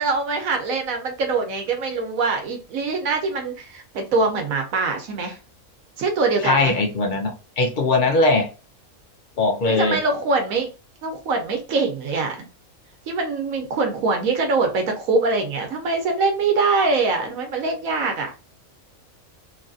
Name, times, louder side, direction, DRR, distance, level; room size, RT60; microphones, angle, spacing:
voice 1, 0.0-5.4 6.0-6.7 9.7-10.7 11.0-12.4 13.1-18.3, right 3 dB, 75° right, 1.1 m, -23 dB
voice 2, 6.4-8.5 9.4-10.0, left 3 dB, 50° left, 0.6 m, -20 dB
3.3 x 2.5 x 2.4 m
omnidirectional pair, 1.5 m